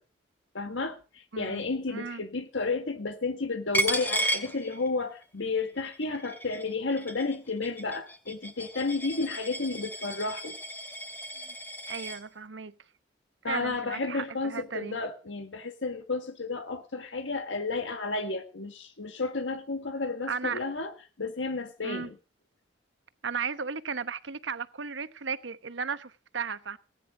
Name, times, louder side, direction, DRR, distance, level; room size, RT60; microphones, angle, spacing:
voice 1, 0.5-10.6 13.4-20.9 21.2-22.1, left 3 dB, 85° left, 1.6 m, -32 dB
voice 2, 1.9-2.2 11.4-11.5 11.9-12.7 13.4-15.0 20.3-20.6 21.2-21.3 21.8-22.1 23.2-26.8, right 5 dB, 80° right, 1.0 m, -35 dB
Coin (dropping), 3.7-5.2 5.6-12.2, equal, 10° left, 2.8 m, -34 dB
18.5 x 10.0 x 5.0 m
head